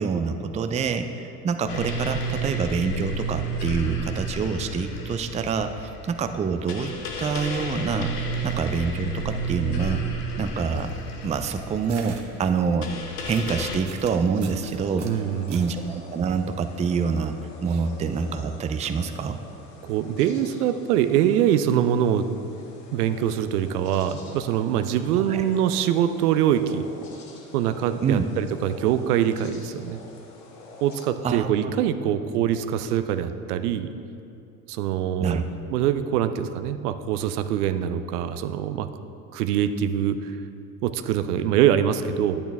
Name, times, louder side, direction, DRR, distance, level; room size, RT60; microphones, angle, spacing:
voice 1, 0.0-6.9 7.2-10.0 10.4-10.9 11.2-12.9 13.2-15.1 15.5-17.3 17.6-19.4 25.3-25.4 28.0-28.2 31.2-31.7 35.2-35.4, right 5 dB, 15° right, 8 dB, 0.4 m, -26 dB
sound 1, 1.7-13.8, right 2 dB, 85° left, 1.0 m, -31 dB
sound 2, 10.5-15.9, right 4 dB, 35° right, 1.2 m, -47 dB
sound 3, 14.3-31.1, left 3 dB, 70° left, 1.6 m, -46 dB
voice 2, 15.0-15.6 19.8-22.3 22.9-26.9 27.5-30.0 30.8-33.9 34.7-35.5 35.7-38.9 39.3-40.3 40.8-42.4, right 10 dB, 80° right, 10 dB, 0.6 m, -24 dB
10.0 x 8.6 x 3.5 m, 2.6 s
hypercardioid pair, 75°, 45 cm